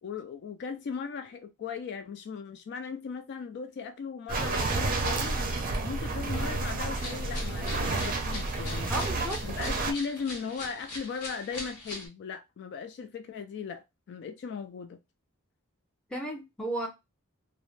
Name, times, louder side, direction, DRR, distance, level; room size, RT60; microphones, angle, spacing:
voice 1, 0.0-5.4 5.8-8.9 9.4-15.0, left 6 dB, 50° left, 0.3 m, -37 dB
sound 1, 4.3-9.9, right 3 dB, 40° right, 0.5 m, -30 dB
sound 2, 6.9-12.1, left 2 dB, 80° left, 1.0 m, -42 dB
voice 2, 8.9-9.4 16.1-16.9, right 1 dB, 5° left, 0.7 m, -33 dB
2.5 x 2.1 x 3.1 m
head